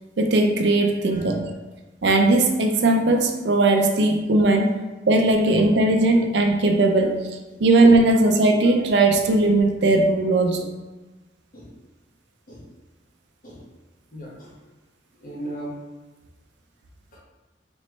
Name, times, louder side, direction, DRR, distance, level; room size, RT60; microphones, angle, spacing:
voice 1, 0.2-1.4 2.0-4.8 5.1-7.3 7.6-10.6, right 2 dB, 70° right, 3 dB, 0.5 m, -18 dB
voice 2, 14.1-14.6 15.2-15.8 17.1-17.2, right 1 dB, 45° left, -5 dB, 1.2 m, -37 dB
4.2 x 3.1 x 3.1 m, 1.2 s
head